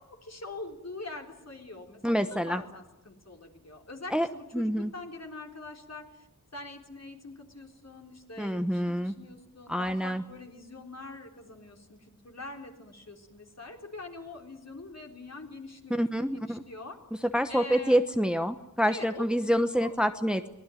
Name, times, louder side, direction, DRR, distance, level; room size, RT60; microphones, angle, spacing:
voice 1, 0.0-6.3 6.5-17.0 17.5-18.0 18.9-19.3 19.8-20.0, left 2 dB, 55° left, 2 dB, 3.9 m, -44 dB
voice 2, 2.0-2.6 4.1-4.3 4.5-4.9 8.4-9.1 9.7-10.2 15.9-16.6 17.2-20.5, equal, 5° right, 9 dB, 1.1 m, -27 dB
24.0 x 18.5 x 9.3 m, 0.94 s
wide cardioid pair, 60°, 32 cm